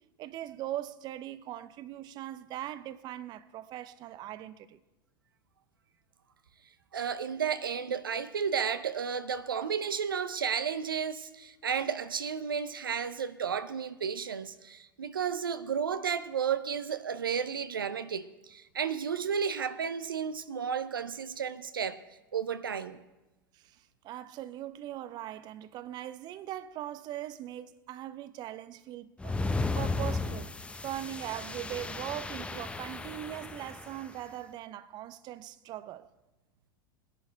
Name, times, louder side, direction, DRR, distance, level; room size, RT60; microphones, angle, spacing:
voice 1, 0.2-4.8 23.5-29.4 29.7-30.5 30.8-36.1, right 13 dB, 40° right, 0.7 m, -40 dB
voice 2, 6.9-22.0 22.3-23.0, right 7 dB, 80° right, 0.7 m, -32 dB
sound 1, 29.2-34.1, left 3 dB, 10° left, 0.8 m, -35 dB
20.5 x 11.0 x 4.5 m
figure-of-eight pair, 85°, 12 cm